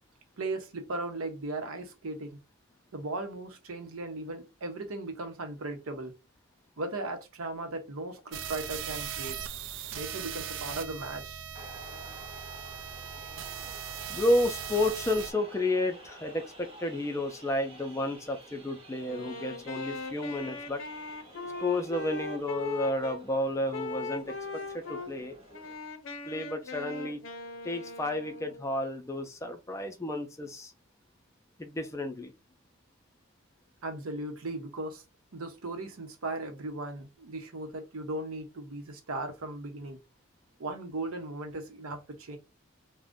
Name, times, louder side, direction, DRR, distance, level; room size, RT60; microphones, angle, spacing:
voice 1, 0.4-2.4 2.9-6.2 6.8-9.4 9.9-11.4 11.8-11.9 33.8-35.0 35.3-40.0 40.6-42.4, right 2 dB, 85° right, 0.7 m, -37 dB
sound 1, 8.3-15.3, right 8 dB, 60° right, 0.4 m, -39 dB
sound 2, 11.5-25.7, right 1 dB, 25° right, 0.8 m, -50 dB
voice 2, 14.1-20.8 21.6-25.4 26.3-27.2 27.6-30.7 31.6-32.3, left 1 dB, 15° left, 0.4 m, -31 dB
Wind instrument woodwind instrument, 19.0-23.2 23.7-25.1 25.5-28.7, left 3 dB, 70° left, 0.6 m, -40 dB
2.5 x 2.1 x 3.5 m
head